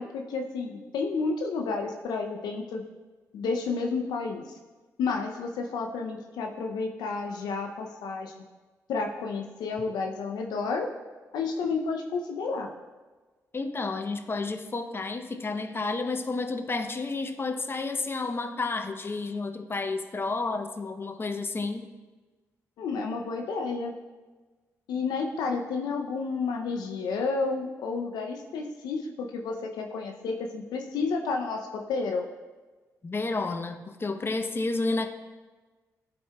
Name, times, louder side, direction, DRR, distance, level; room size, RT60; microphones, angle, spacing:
voice 1, 0.0-2.8 3.3-4.6 5.0-8.3 8.9-10.9 11.3-12.7 22.8-23.9 24.9-32.2, left 4 dB, 80° left, 3 dB, 0.5 m, -31 dB
voice 2, 13.5-21.9 33.0-35.1, left 3 dB, 35° left, 7 dB, 0.7 m, -31 dB
12.0 x 4.3 x 2.3 m, 1.3 s
supercardioid pair, 50°, 7 cm